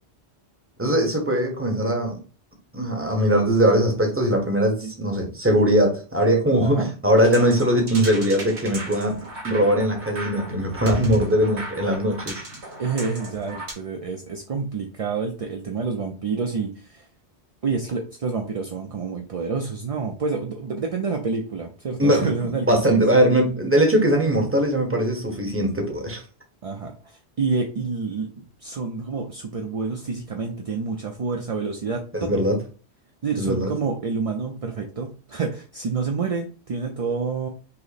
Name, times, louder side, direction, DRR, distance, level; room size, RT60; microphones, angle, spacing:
voice 1, 0.8-2.2 2.7-9.2 9.4-12.4 22.0-26.2 32.1-32.6 33.4-33.7, right 1 dB, 15° right, 1.0 m, -21 dB
sound 1, 7.2-13.7, right 1 dB, 85° right, 1.5 m, -36 dB
voice 2, 12.8-17.1 17.6-23.0 26.6-32.4 33.2-37.5, right 4 dB, 50° right, 0.4 m, -28 dB
5.6 x 2.0 x 4.1 m
omnidirectional pair, 1.1 m